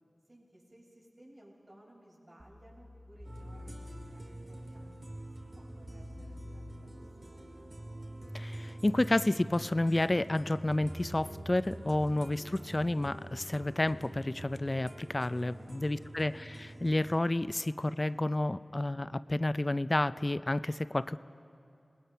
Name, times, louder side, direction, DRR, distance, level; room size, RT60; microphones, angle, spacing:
voice 1, 0.3-5.3 5.5-7.7 15.5-16.1, right 1 dB, 50° right, -4 dB, 7.0 m, -59 dB
sound 1, 2.4-13.8, equal, 20° right, 3.8 m, -49 dB
sound 2, 3.2-17.2, right 1 dB, 75° right, 2.5 m, -47 dB
voice 2, 8.3-21.2, left 1 dB, 35° left, 14 dB, 0.5 m, -30 dB
27.5 x 20.0 x 5.7 m, 2.6 s
wide cardioid pair, 50°, 0 cm